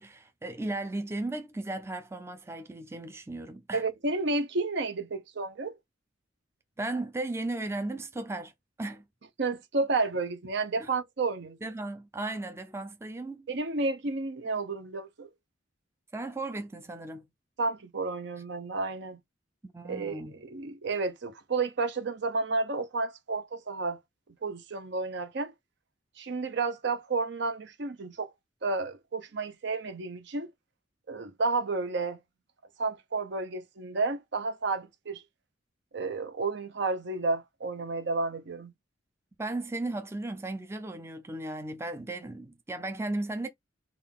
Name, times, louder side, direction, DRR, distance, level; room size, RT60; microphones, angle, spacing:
voice 1, 0.0-3.8 6.8-8.5 8.8-9.0 10.8-10.9 11.6-13.5 16.1-17.3 19.7-20.4 39.4-43.5, right 2 dB, 15° right, 0.4 m, -36 dB
voice 2, 3.7-5.7 9.4-11.6 13.5-15.3 17.6-19.2 19.8-24.0 24.4-25.5 26.2-28.3 28.6-30.5 31.1-32.2 32.8-35.2 35.9-38.7, right 3 dB, 65° right, 0.7 m, -31 dB
3.7 x 2.3 x 3.5 m
head